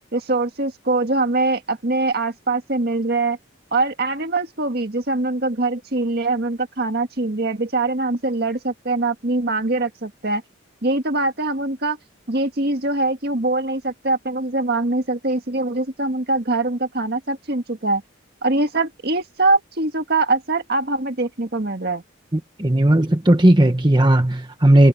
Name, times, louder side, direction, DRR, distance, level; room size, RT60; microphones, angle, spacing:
voice 1, 0.1-3.4 3.7-10.4 10.8-12.0 12.3-18.0 18.4-22.0, right 2 dB, 50° right, 1.8 m, -23 dB
voice 2, 22.3-24.9, right 1 dB, 20° right, 1.1 m, -16 dB
head